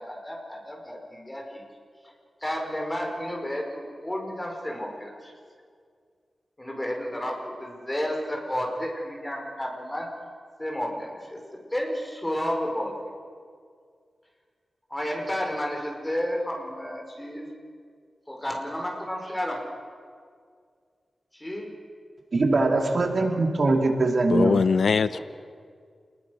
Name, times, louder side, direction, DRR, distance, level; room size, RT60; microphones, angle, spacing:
voice 1, 0.0-1.6 2.4-5.3 6.6-10.1 10.6-12.9 14.9-17.5 18.3-19.6 21.3-21.7 25.0-25.2, equal, 15° left, 5.1 m, -31 dB
voice 2, 22.3-24.6, right 2 dB, 60° right, 2.9 m, -22 dB
voice 3, 24.3-25.2, left 5 dB, 80° left, 0.6 m, -21 dB
29.0 x 21.0 x 6.5 m
wide cardioid pair, 90°, 0 cm